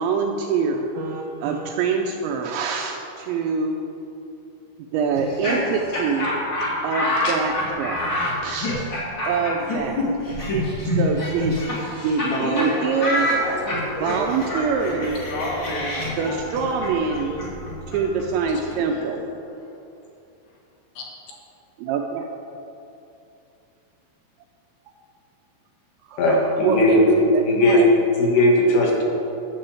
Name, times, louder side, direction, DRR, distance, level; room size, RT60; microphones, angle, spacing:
voice 1, 0.0-3.8 4.9-6.3 6.8-8.0 8.4-8.8 9.3-10.0 10.8-11.6 12.0-13.3 14.0-15.2 16.2-17.3 17.9-19.2 21.8-22.3 26.0-27.0 27.3-27.9, right 5 dB, 80° right, 2 dB, 2.7 m, -25 dB
Laughter, 5.1-12.3 12.6-12.7 13.0-18.7, left 1 dB, 40° left, 1.7 m, -27 dB
voice 2, 12.2-14.3 14.8-16.4 16.7-17.5 18.7-19.2 19.6-19.8, equal, 90° left, -4 dB, 5.0 m, -30 dB
voice 3, 26.2-27.1 27.5-27.8 28.2-29.0, left 1 dB, 65° left, -1 dB, 3.0 m, -18 dB
11.5 x 6.8 x 7.7 m, 2.7 s
omnidirectional pair, 5.8 m